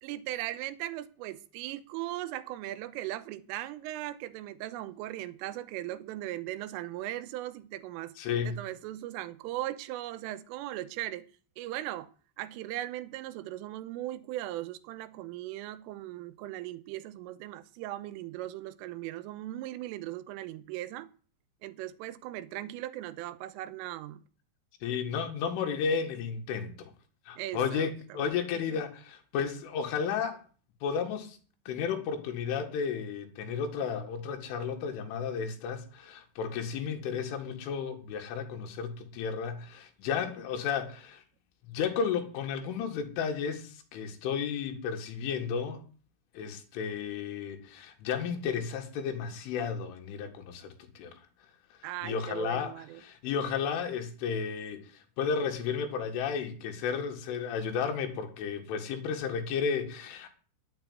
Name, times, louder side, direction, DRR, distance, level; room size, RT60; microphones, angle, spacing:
voice 1, 0.0-8.1 8.4-11.3 11.6-12.1 12.4-21.1 21.6-24.2 27.4-28.2 28.7-28.8 51.8-53.0, right 15 dB, 90° right, 3.4 m, -38 dB
voice 2, 8.2-8.6 24.8-26.9 27.3-30.4 30.8-31.4 31.7-41.2 41.7-45.8 46.4-51.2 52.0-52.7 53.0-54.9 55.2-60.3, left 6 dB, 75° left, 4.2 m, -33 dB
10.5 x 8.9 x 9.5 m
omnidirectional pair, 5.7 m